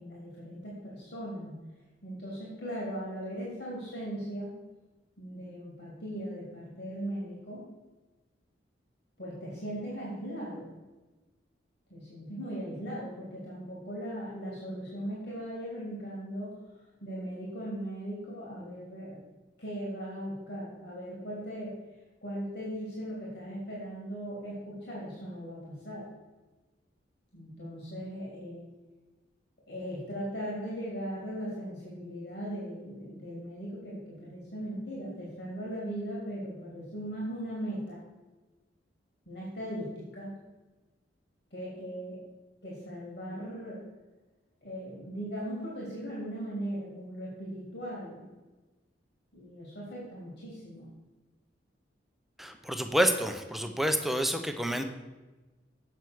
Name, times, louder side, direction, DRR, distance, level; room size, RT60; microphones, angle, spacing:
voice 1, 0.0-1.5 2.0-4.5 5.2-7.6 9.2-10.7 11.9-16.6 17.0-19.2 19.6-21.7 22.2-26.1 27.3-28.7 29.7-38.0 39.3-40.3 41.5-42.2 42.6-43.8 44.6-48.3 49.3-50.9, equal, 60° left, -5 dB, 3.0 m, -38 dB
voice 2, 52.4-54.9, equal, ahead, 6 dB, 0.7 m, -28 dB
8.3 x 6.2 x 6.2 m, 1.2 s
head